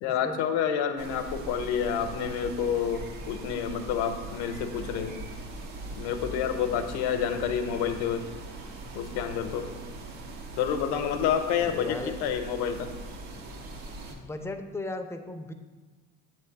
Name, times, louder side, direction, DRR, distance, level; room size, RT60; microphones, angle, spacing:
voice 1, 0.0-5.1 5.9-8.3 8.9-9.7 10.6-12.9, left 8 dB, 65° left, 8 dB, 0.8 m, -29 dB
sound 1, 1.0-14.1, right 2 dB, 75° right, 1.2 m, -41 dB
voice 2, 11.6-12.2 14.1-15.5, left 2 dB, 5° left, 6 dB, 0.5 m, -36 dB
7.5 x 3.3 x 5.8 m, 1.3 s
hypercardioid pair, 55°, 44 cm